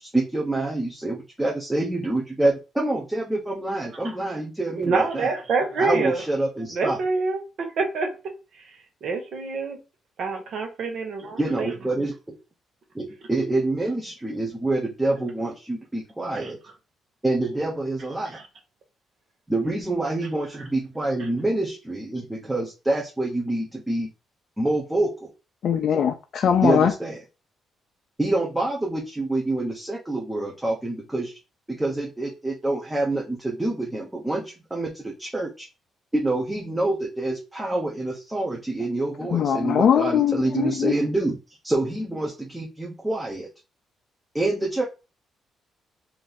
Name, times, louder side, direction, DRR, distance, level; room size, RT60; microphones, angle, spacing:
voice 1, 0.0-5.3 5.8-7.0 11.4-12.1 12.9-16.6 17.2-18.4 19.5-24.1 24.6-25.3 26.6-27.2 28.2-31.4 31.7-35.7 36.1-41.4 41.6-43.5 44.3-44.8, right 2 dB, 10° right, 0.9 m, -26 dB
voice 2, 4.8-6.2 6.7-7.4 7.8-8.1 9.0-9.8 10.2-11.7 16.4-16.5 18.3-18.4, right 4 dB, 65° right, 1.3 m, -26 dB
voice 3, 25.6-26.9 39.3-40.9, left 8 dB, 60° left, 0.5 m, -21 dB
3.1 x 2.8 x 4.0 m
cardioid pair, 90°, 0 cm